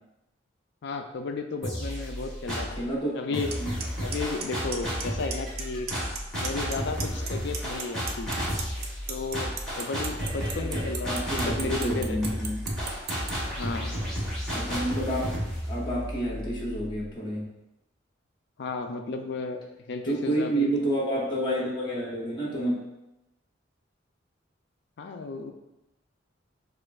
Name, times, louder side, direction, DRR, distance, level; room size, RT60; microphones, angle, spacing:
voice 1, 0.8-2.8 3.1-3.5 4.0-5.9 6.3-8.3 9.1-9.5 9.8-12.2 12.5-12.6 13.5-14.0 18.6-19.6 19.9-20.7 25.0-25.5, left 4 dB, 60° left, 6 dB, 0.4 m, -33 dB
sound 1, 1.6-2.8 3.3-17.0, equal, 5° left, 1.4 m, -32 dB
voice 2, 2.8-3.7 10.6-10.7 11.0-12.6 14.5-15.3 15.7-17.5 20.0-22.8, right 1 dB, 25° left, -4 dB, 1.0 m, -29 dB
Clock, 3.5-3.6 3.8-4.2 4.4-5.0 5.3-5.6 5.9-6.7 7.0-13.3, right 8 dB, 55° right, 0.4 m, -33 dB
6.3 x 2.5 x 2.4 m, 0.94 s
head